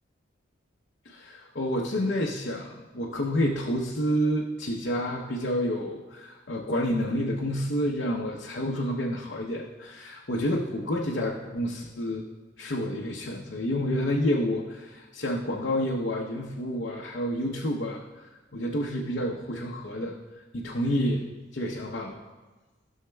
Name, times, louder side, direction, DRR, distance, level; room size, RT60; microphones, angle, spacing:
voice 1, 1.0-12.3 12.6-21.3 21.5-22.2, equal, 65° left, -2 dB, 0.7 m, -29 dB
15.0 x 6.4 x 2.2 m, 1.3 s
head